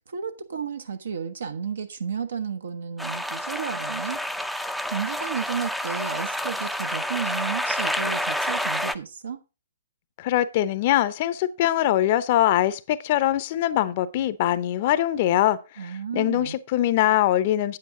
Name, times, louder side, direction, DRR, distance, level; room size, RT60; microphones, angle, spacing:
voice 1, 0.1-4.2 4.9-9.4 15.8-16.6, right 6 dB, 70° right, 1.0 m, -32 dB
sound 1, 3.0-9.0, equal, ahead, 0.5 m, -29 dB
voice 2, 10.2-17.8, left 13 dB, 45° left, 0.7 m, -23 dB
8.9 x 8.7 x 3.7 m
figure-of-eight pair, 125°, 0 cm